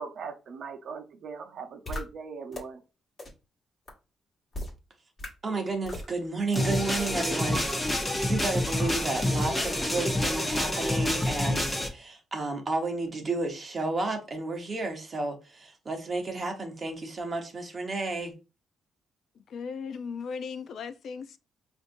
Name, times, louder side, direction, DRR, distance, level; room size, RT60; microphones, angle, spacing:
voice 1, 0.0-2.8, right 5 dB, 60° right, 0.7 m, -40 dB
sound 1, 1.9-2.0 2.5-2.6 3.2-3.3 3.9-4.0 4.5-4.7 5.2-5.3 5.9-6.1 6.5-6.6 7.2-7.3, left 1 dB, 30° left, 1.3 m, -35 dB
voice 2, 5.4-18.3, right 3 dB, 30° right, 1.0 m, -32 dB
sound 2, 6.6-11.9, left 1 dB, 15° left, 0.7 m, -28 dB
voice 3, 19.4-21.4, left 5 dB, 55° left, 0.4 m, -37 dB
5.1 x 2.6 x 2.6 m
cardioid pair, 145°, 0 cm